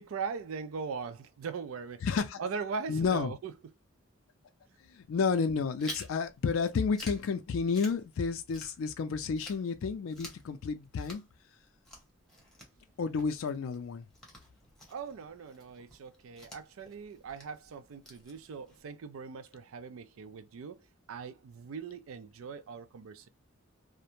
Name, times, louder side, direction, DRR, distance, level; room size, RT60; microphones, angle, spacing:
voice 1, 0.0-2.1 2.4-3.7 14.9-23.3, right 5 dB, 80° right, 0.4 m, -40 dB
voice 2, 2.0-2.4 2.9-3.3 4.9-11.2 13.0-14.1, left 5 dB, 75° left, 0.4 m, -31 dB
Chewing mastication, 5.8-9.1 9.4-18.8, left 1 dB, 5° left, 0.8 m, -50 dB
2.4 x 2.1 x 2.9 m
head